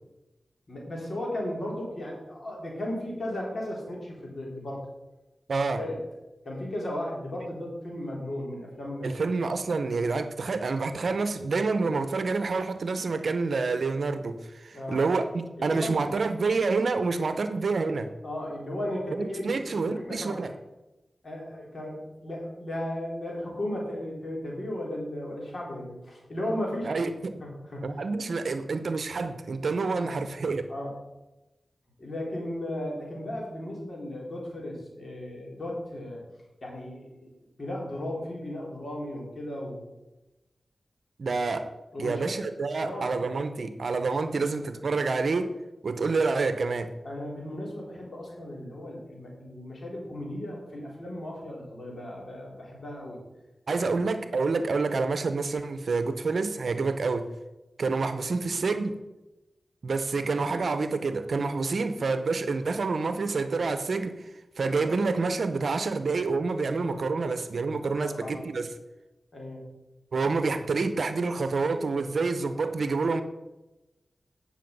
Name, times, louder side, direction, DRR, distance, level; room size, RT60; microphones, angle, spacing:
voice 1, 0.7-4.9 5.8-6.0 6.4-9.1 14.7-15.0 15.6-16.1 18.2-20.5 21.2-26.9 27.4-28.0 30.0-30.2 30.7-30.9 32.0-36.2 36.6-37.3 37.6-39.9 41.9-42.4 42.7-43.3 47.0-53.2 53.7-54.0 68.0-68.5 69.3-69.7, left 1 dB, 55° left, -2 dB, 3.8 m, -35 dB
voice 2, 5.5-5.8 9.0-18.1 19.2-20.5 26.8-27.4 27.8-30.6 41.2-41.7 42.0-45.5 45.8-46.9 53.7-57.3 57.8-59.0 59.8-64.3 64.6-68.7 70.1-73.2, right 4 dB, 75° right, 10 dB, 0.7 m, -28 dB
9.4 x 6.4 x 5.3 m, 1.0 s
cardioid pair, 40°, 0 cm